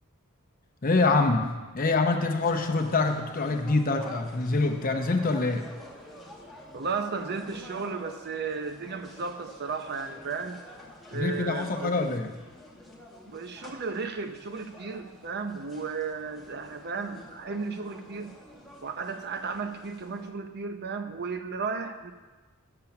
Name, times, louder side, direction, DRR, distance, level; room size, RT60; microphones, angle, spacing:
voice 1, 0.8-1.5 1.7-5.7 11.1-12.3, left 3 dB, 40° left, 4 dB, 0.7 m, -25 dB
sound 1, 2.4-20.3, left 1 dB, ahead, 1.1 m, -49 dB
voice 2, 6.7-10.6 11.1-12.0 13.3-18.3 18.8-22.1, right 4 dB, 50° right, 7 dB, 0.6 m, -34 dB
8.5 x 6.9 x 5.8 m, 1.3 s
head